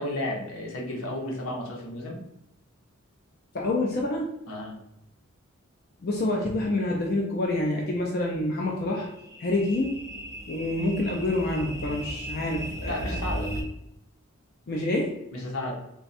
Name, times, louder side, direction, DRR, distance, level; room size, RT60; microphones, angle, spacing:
voice 1, 0.0-2.2 4.5-4.7 12.9-13.5 15.3-15.7, left 1 dB, 80° left, -1 dB, 1.0 m, -33 dB
voice 2, 3.5-4.3 6.0-9.1 9.4-9.9 10.5-13.2 14.7-15.2, left 2 dB, 50° left, -1 dB, 0.5 m, -27 dB
sound 1, 8.6-13.6, right 1 dB, 15° right, 0.5 m, -36 dB
3.4 x 2.3 x 4.0 m, 0.83 s
head